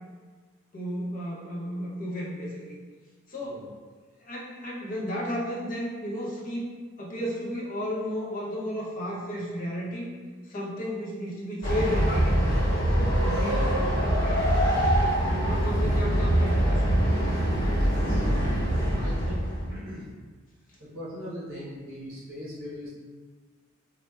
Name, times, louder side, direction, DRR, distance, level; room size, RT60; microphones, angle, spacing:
voice 1, 0.7-2.8 3.3-3.6 4.2-6.7 7.0-10.1 10.5-12.3 13.2-13.5 14.0-14.5 15.4-17.4, equal, 40° left, -5 dB, 0.6 m, -33 dB
Train, 11.6-19.8, equal, 60° left, 0.9 m, -24 dB
voice 2, 17.7-18.2 18.6-20.1 20.8-22.9, equal, 60° right, -7 dB, 0.7 m, -41 dB
4.2 x 2.1 x 2.2 m, 1.5 s
head